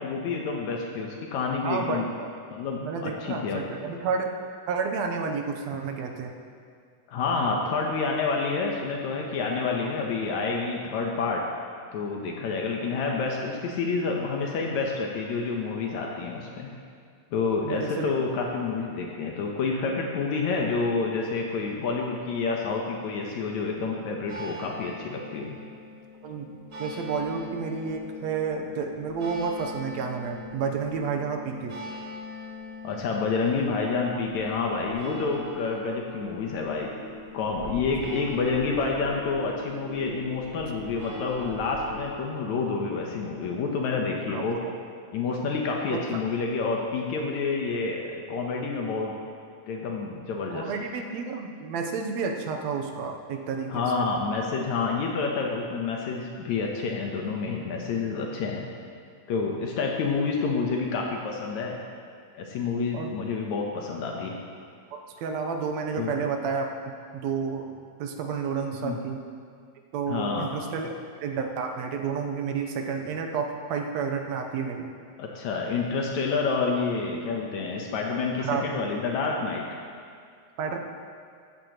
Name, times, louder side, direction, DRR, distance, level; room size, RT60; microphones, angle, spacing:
voice 1, 0.0-2.1 2.5-3.6 7.1-11.4 11.9-16.7 17.3-25.6 32.8-36.9 37.3-44.6 45.1-49.1 49.7-50.6 53.7-58.6 59.3-61.8 62.3-64.3 66.0-66.1 68.8-69.0 70.1-70.8 75.2-79.6, left 4 dB, 75° left, 0 dB, 2.3 m, -28 dB
voice 2, 1.6-2.3 2.8-4.3 4.7-6.3 17.6-18.1 26.2-31.8 44.3-44.7 45.9-46.2 50.5-54.1 62.9-63.1 64.9-69.2 69.9-70.9 71.2-74.9 78.4-78.8 80.6-80.8, right 5 dB, 75° right, 3 dB, 2.0 m, -31 dB
sound 1, 24.3-42.2, left 1 dB, 40° right, 2.4 m, -41 dB
14.5 x 12.5 x 3.0 m, 2.2 s
omnidirectional pair, 3.4 m